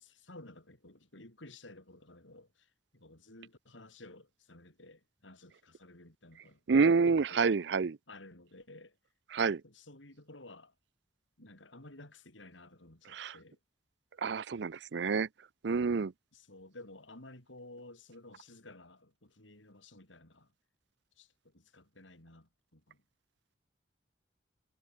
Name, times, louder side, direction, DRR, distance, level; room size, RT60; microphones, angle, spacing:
voice 1, 0.0-6.6 7.1-7.5 8.1-9.0 9.6-10.7 11.4-13.6 16.3-20.5 21.2-23.0, left 2 dB, 90° left, 5.6 m, -54 dB
voice 2, 6.7-8.0 9.3-9.6 13.1-13.3 14.2-15.3 15.6-16.1, right 5 dB, 65° right, 0.5 m, -28 dB
head